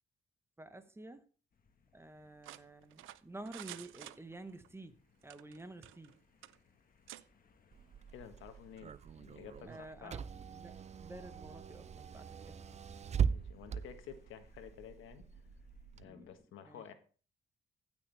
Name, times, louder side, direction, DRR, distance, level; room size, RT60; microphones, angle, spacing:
voice 1, 0.6-1.2 1.9-5.0 5.2-6.2 9.7-12.6 16.0-16.3 16.6-16.8, right 2 dB, 10° right, 1.0 m, -51 dB
sound 1, 1.5-16.4, left 5 dB, 45° left, 1.4 m, -68 dB
sound 2, 2.4-4.7 5.2-6.1 6.4-6.6 7.1-7.2, right 15 dB, 85° right, 0.6 m, -50 dB
Car / Engine, 7.7-16.0, right 7 dB, 35° right, 0.4 m, -40 dB
voice 2, 8.1-10.2 13.2-15.2 15.9-16.9, left 8 dB, 85° left, 1.4 m, -52 dB
15.0 x 6.3 x 3.4 m
cardioid pair, 90°, 20 cm